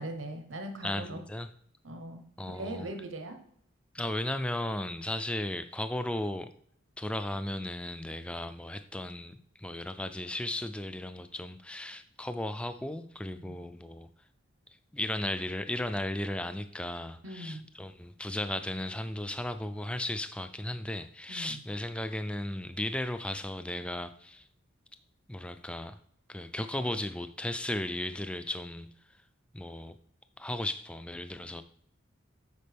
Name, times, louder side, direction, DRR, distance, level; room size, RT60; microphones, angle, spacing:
voice 1, 0.0-1.2 1.8-3.4 13.4-13.6 17.2-17.7 21.3-21.6, right 1 dB, 70° right, 6 dB, 1.0 m, -40 dB
voice 2, 0.8-1.5 2.4-2.9 3.9-6.5 7.0-14.1 14.9-24.5 25.3-26.0 26.3-28.9 29.5-29.9 30.4-31.6, left 1 dB, 5° left, 10 dB, 0.3 m, -35 dB
8.5 x 6.0 x 3.4 m, 0.68 s
head